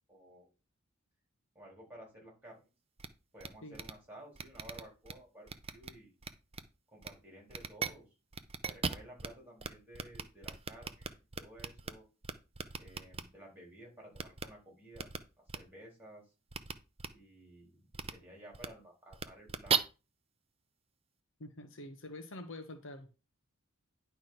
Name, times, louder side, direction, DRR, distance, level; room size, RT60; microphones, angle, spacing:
voice 1, 0.1-0.5 1.5-2.7 3.3-6.1 6.9-8.0 8.6-12.1 12.8-15.1 15.5-16.2 17.1-19.8, right 1 dB, 10° right, 4.4 m, -54 dB
sound 1, 3.0-3.1 3.4-3.5 3.7-3.9 4.4-5.1 5.5-5.9 6.2-6.6 7.0-7.1 7.5-7.9 8.3-9.3 9.6-9.7 9.9-11.9 12.2-13.2 14.2-14.4 15.0-15.2 15.5-15.6 16.5-16.7 17.0-17.1 17.9-18.1 18.5-18.7 19.1-19.8, right 6 dB, 25° right, 0.6 m, -36 dB
voice 2, 21.4-23.1, left 1 dB, 60° left, 1.1 m, -46 dB
10.5 x 3.6 x 5.9 m
head